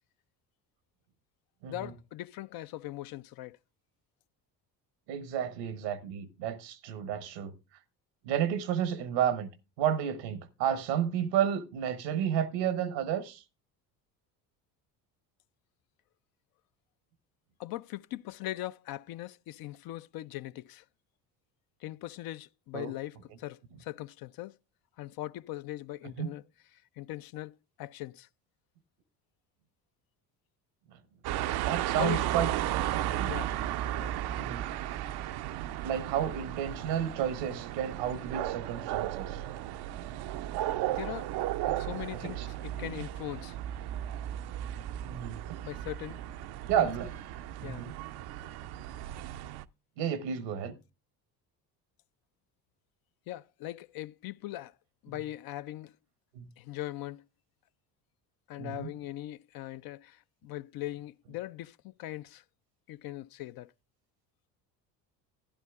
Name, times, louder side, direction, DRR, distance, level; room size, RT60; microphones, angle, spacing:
voice 1, 1.7-3.6 17.6-20.8 21.8-24.6 25.0-26.4 27.0-28.3 32.0-32.2 33.3-33.5 34.0-34.2 40.9-41.3 41.6-43.6 45.6-46.2 46.8-46.9 47.6-47.9 53.3-54.7 55.0-55.9 56.6-57.2 58.5-62.4 62.9-63.7, left 15 dB, 50° left, 0.5 m, -40 dB
voice 2, 5.1-7.5 8.2-9.5 9.8-13.4 22.7-22.9 26.2-26.3 31.6-32.5 32.9-33.3 34.4-34.6 35.8-39.4 42.2-42.5 42.7-42.9 45.0-45.4 46.7-47.1 47.6-47.9 50.0-50.7 56.3-56.5 58.6-58.9, right 9 dB, 80° right, 1.1 m, -31 dB
sound 1, 31.2-49.6, right 13 dB, 55° right, 0.5 m, -35 dB
12.0 x 11.0 x 2.3 m
hypercardioid pair, 60°, 49 cm